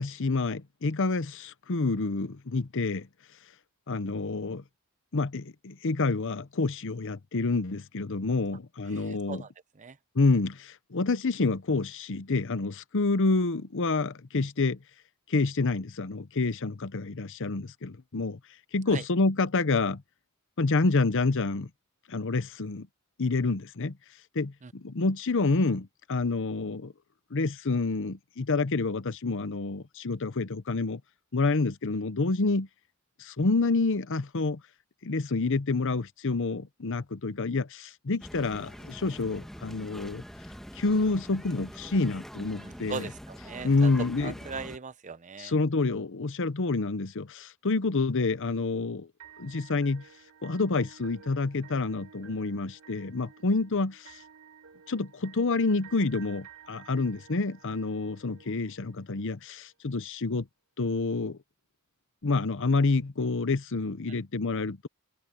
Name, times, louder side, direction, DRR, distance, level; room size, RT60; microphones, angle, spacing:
voice 1, 0.0-3.1 3.9-4.6 5.1-9.4 10.1-14.8 15.3-18.4 18.7-20.0 20.6-21.7 22.1-22.9 23.2-24.0 24.3-26.9 27.3-31.0 31.3-32.7 33.2-34.6 35.0-40.2 40.8-43.0 43.6-44.3 45.4-49.1 49.4-50.0 50.4-54.1 54.9-60.5 60.8-61.4 62.2-64.9, left 3 dB, 60° left, 0.8 m, -28 dB
voice 2, 8.9-10.0 18.9-19.0 24.6-24.7 42.6-45.5, right 4 dB, 35° right, 0.7 m, -40 dB
sound 1, 38.2-44.8, equal, ahead, 1.5 m, -44 dB
sound 2, 49.2-59.2, right 7 dB, 70° right, 3.6 m, -53 dB
head